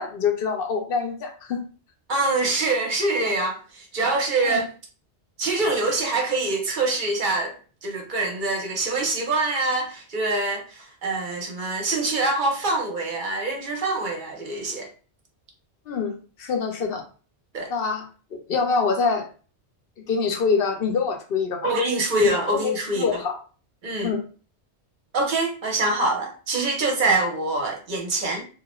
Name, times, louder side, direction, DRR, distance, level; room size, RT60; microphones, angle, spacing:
voice 1, 0.0-1.6 4.4-4.7 15.9-17.0 17.7-19.3 20.1-21.7 22.2-23.4 24.0-24.2, left 5 dB, 60° left, 0.7 m, -25 dB
voice 2, 2.1-4.7 5.4-7.5 7.8-14.9 17.5-17.7 21.6-23.1 23.8-24.1 25.1-28.4, right 2 dB, 50° right, 0.7 m, -24 dB
2.4 x 2.0 x 2.9 m
omnidirectional pair, 1.2 m